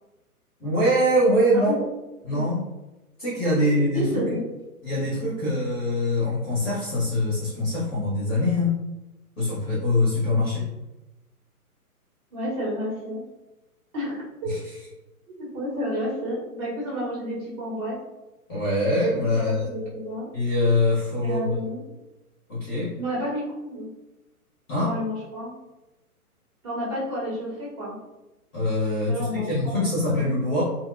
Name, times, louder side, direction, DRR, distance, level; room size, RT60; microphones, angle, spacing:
voice 1, 0.6-1.7 2.2-2.6 3.2-4.2 4.8-8.8 9.4-10.7 14.5-14.6 18.5-19.7 20.3-21.5 22.5-22.9 24.7-25.0 28.5-30.6, left 1 dB, 15° left, -8 dB, 0.6 m, -23 dB
voice 2, 3.5-4.4 12.3-13.2 13.9-14.5 15.3-18.0 19.1-20.3 21.2-21.9 23.0-23.9 24.8-25.5 26.6-28.0 29.1-30.3, equal, 30° right, -6 dB, 0.9 m, -31 dB
2.9 x 2.1 x 2.4 m, 1.0 s
figure-of-eight pair, 125°, 45 cm